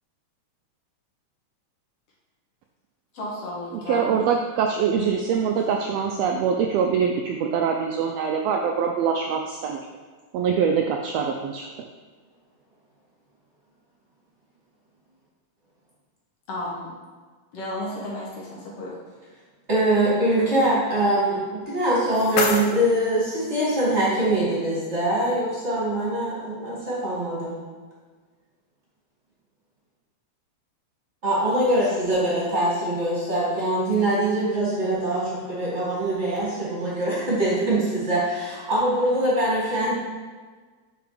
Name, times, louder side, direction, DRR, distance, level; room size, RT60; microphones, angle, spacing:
voice 1, 3.1-4.2 5.0-5.1 16.5-16.9 17.5-19.0, left 1 dB, 60° left, -4 dB, 2.2 m, -33 dB
voice 2, 3.9-9.8 10.3-11.6, right 6 dB, 80° right, 2 dB, 1.5 m, -24 dB
voice 3, 19.7-27.6 31.2-39.9, right 1 dB, 25° right, -7 dB, 1.8 m, -23 dB
sound 1, 21.6-23.6, left 4 dB, 85° left, 2.2 m, -29 dB
6.8 x 4.7 x 5.0 m, 1.4 s
omnidirectional pair, 3.3 m